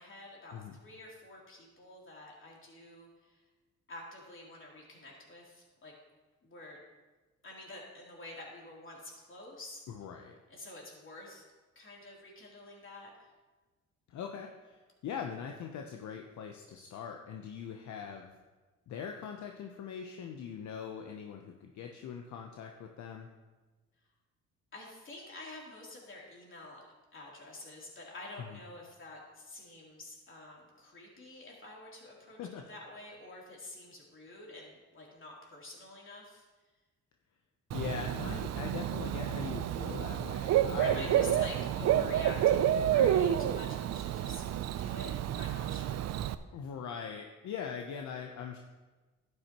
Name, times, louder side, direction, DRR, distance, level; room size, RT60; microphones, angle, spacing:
voice 1, 0.0-3.4 3.9-5.9 6.4-6.8 7.4-9.8 10.5-11.4 11.7-13.3 24.7-26.9 27.1-36.4 40.7-44.5 44.8-46.0, left 2 dB, 40° left, -3 dB, 3.2 m, -48 dB
voice 2, 9.9-10.4 14.1-18.4 18.9-23.3 28.5-28.6 32.4-32.7 37.7-41.5 41.9-42.1 43.0-43.2 46.5-48.6, left 7 dB, 70° left, 3 dB, 0.8 m, -41 dB
Bird / Cricket, 37.7-46.3, right 11 dB, 60° right, 0.5 m, -30 dB
11.5 x 9.7 x 3.0 m, 1.2 s
cardioid pair, 90°, 30 cm